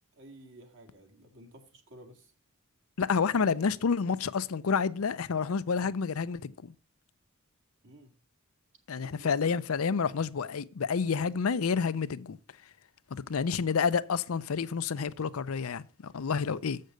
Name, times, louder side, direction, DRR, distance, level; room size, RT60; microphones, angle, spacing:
voice 1, 0.1-2.3 7.8-8.1 9.0-9.5, right 1 dB, 60° right, 2.1 m, -52 dB
voice 2, 3.0-6.7 8.9-12.4 13.3-16.8, left 5 dB, 70° left, 0.5 m, -29 dB
7.6 x 6.6 x 6.6 m
head